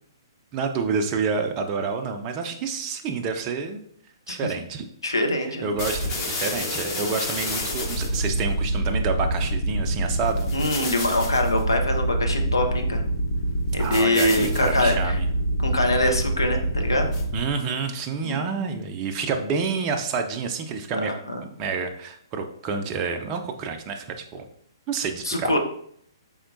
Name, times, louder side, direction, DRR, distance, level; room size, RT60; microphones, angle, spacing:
voice 1, 0.5-3.8 4.3-4.8 5.4-10.5 13.8-15.3 17.3-21.1 21.6-24.5 24.9-25.6, right 5 dB, 25° right, 5 dB, 0.4 m, -28 dB
voice 2, 5.0-5.7 10.5-13.0 13.7-15.2 15.6-17.1 18.2-18.6 20.9-21.4 25.2-25.6, left 1 dB, 75° left, 4 dB, 0.7 m, -24 dB
sound 1, 5.8-17.6, right 1 dB, 30° left, 1.0 m, -26 dB
4.4 x 3.5 x 2.5 m, 0.66 s
figure-of-eight pair, 120°, 2 cm